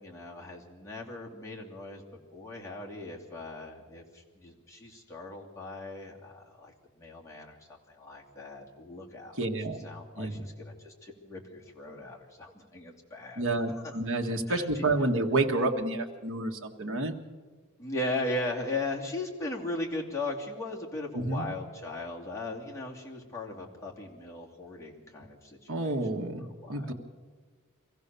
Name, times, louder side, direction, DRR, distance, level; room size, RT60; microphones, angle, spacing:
voice 1, 0.0-2.0 2.3-9.4 9.8-13.4 13.8-14.0 14.5-14.8 17.8-26.0 26.6-26.9, left 2 dB, 15° left, -3 dB, 2.7 m, -38 dB
voice 2, 9.3-9.8 10.2-10.5 13.3-17.2 21.1-21.5 25.7-26.9, right 2 dB, 65° right, 3 dB, 1.7 m, -29 dB
24.0 x 15.5 x 6.9 m, 1.5 s
head